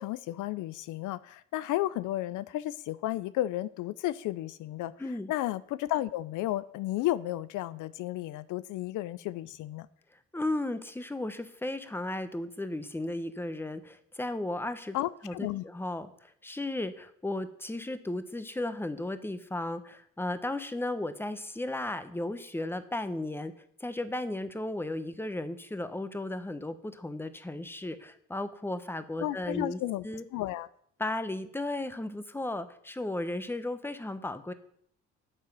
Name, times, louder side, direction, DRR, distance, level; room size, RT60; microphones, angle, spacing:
voice 1, 0.0-4.9 5.3-9.9 14.9-15.6 29.2-30.1 30.3-30.7, left 15 dB, 90° left, 16 dB, 0.5 m, -33 dB
voice 2, 5.0-5.3 10.3-15.0 15.2-23.5 23.8-30.2 31.0-34.5, left 1 dB, 5° left, 11 dB, 1.0 m, -35 dB
9.0 x 7.5 x 6.1 m, 0.65 s
cardioid pair, 90°, 30 cm